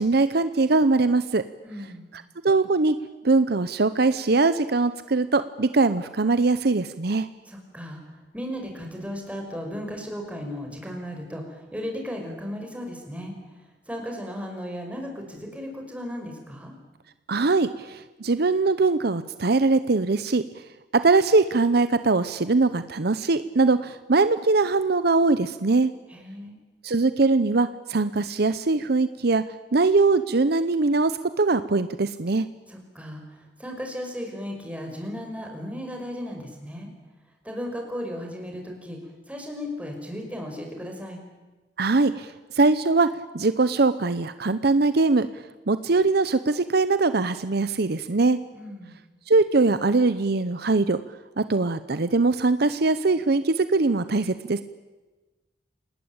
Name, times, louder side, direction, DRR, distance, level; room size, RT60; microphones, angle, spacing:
voice 1, 0.0-1.4 2.4-3.0 3.2-7.3 17.3-20.4 20.9-25.9 26.8-29.4 29.7-32.5 41.8-43.1 43.3-45.3 45.7-48.4 49.3-51.0 51.4-54.6, right 3 dB, 65° right, 12 dB, 0.8 m, -21 dB
voice 2, 1.6-2.1 7.5-16.8 26.1-26.6 32.7-36.9 37.4-39.0 39.3-41.2 48.5-49.0, equal, 10° right, 2 dB, 5.5 m, -35 dB
28.0 x 19.5 x 8.8 m, 1.2 s
head